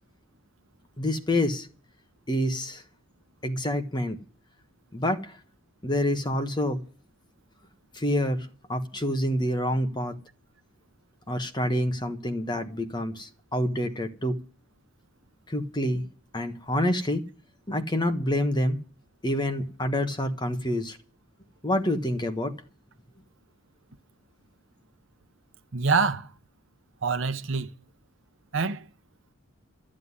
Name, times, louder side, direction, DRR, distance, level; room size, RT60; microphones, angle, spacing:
voice 1, 1.0-1.7 2.3-2.8 3.4-4.2 4.9-5.3 5.8-6.8 7.9-10.2 11.3-14.4 15.5-16.0 16.3-17.2 17.7-18.8 19.2-21.0 21.6-22.6, left 1 dB, 20° left, 1.2 m, -27 dB
voice 2, 25.7-26.3 27.0-27.7 28.5-28.9, right 4 dB, 65° right, 0.9 m, -25 dB
13.0 x 7.7 x 9.7 m
head